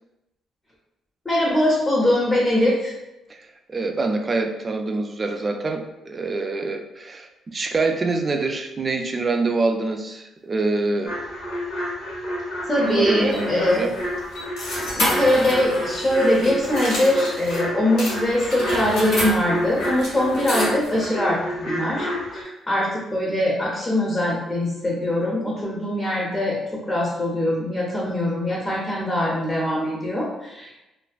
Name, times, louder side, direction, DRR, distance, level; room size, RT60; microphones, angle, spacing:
voice 1, 1.2-2.9 12.7-13.8 14.9-30.8, left 1 dB, 25° left, -4 dB, 0.6 m, -22 dB
voice 2, 3.3-11.2 12.8-14.0, right 3 dB, 35° right, 5 dB, 0.3 m, -25 dB
sound 1, 11.1-22.4, equal, 65° left, 0.9 m, -30 dB
sound 2, 12.9-17.6 18.0-21.0, left 1 dB, 85° left, 1.3 m, -30 dB
2.5 x 2.1 x 2.3 m, 0.97 s
cardioid pair, 90°, 0 cm